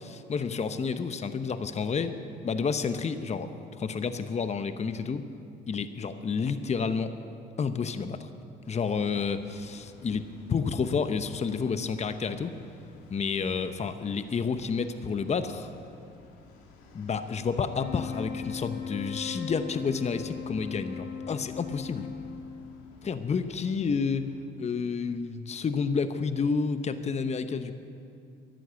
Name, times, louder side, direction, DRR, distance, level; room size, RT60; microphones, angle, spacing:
voice 1, 0.0-2.2 2.4-5.3 5.7-7.2 7.6-8.3 8.7-12.5 13.1-15.7 16.9-22.1 23.0-27.7, left 5 dB, 35° left, 10 dB, 0.9 m, -30 dB
sound 1, 8.6-24.2, left 3 dB, 85° left, 2.1 m, -54 dB
sound 2, 17.6-23.1, left 6 dB, 70° left, 2.2 m, -39 dB
14.0 x 11.5 x 8.5 m, 2.5 s
supercardioid pair, 75°, 20 cm